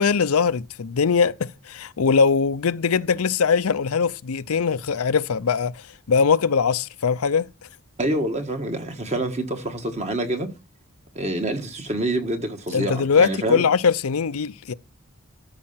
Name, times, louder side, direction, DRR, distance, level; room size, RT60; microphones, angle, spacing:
voice 1, 0.0-5.7 6.1-7.5 12.7-14.7, left 5 dB, 85° left, 0.6 m, -21 dB
voice 2, 8.0-10.5 11.1-13.6, right 1 dB, 30° right, 1.5 m, -26 dB
13.0 x 5.6 x 5.7 m
head